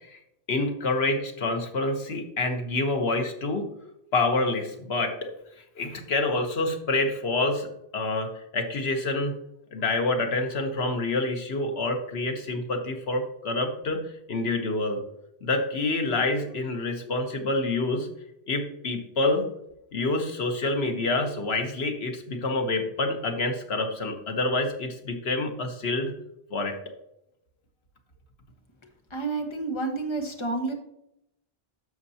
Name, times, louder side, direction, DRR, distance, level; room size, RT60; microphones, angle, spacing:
voice 1, 0.5-3.7 4.1-5.3 5.8-9.3 9.7-14.0 14.3-15.0 15.4-18.1 18.5-19.4 19.9-26.1 26.5-26.8, left 2 dB, 80° left, 4 dB, 1.4 m, -27 dB
voice 2, 29.1-30.7, right 3 dB, 30° left, 3 dB, 1.2 m, -29 dB
11.0 x 6.6 x 2.8 m, 0.80 s
omnidirectional pair, 1.0 m